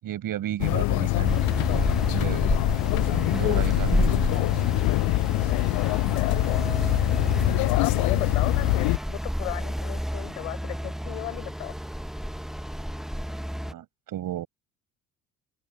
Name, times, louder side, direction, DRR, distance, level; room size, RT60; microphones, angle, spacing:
voice 1, 0.0-1.4 1.7-2.4 3.1-4.6 13.6-14.5, right 12 dB, 45° right, 6.6 m, -34 dB
sound 1, 0.6-9.0, left 22 dB, 50° left, 1.2 m, -24 dB
sound 2, 1.2-13.7, equal, ahead, 1.7 m, -30 dB
voice 2, 5.5-6.4 7.7-11.8, left 20 dB, 70° left, 5.3 m, -36 dB
open air
figure-of-eight pair, 55°, 44 cm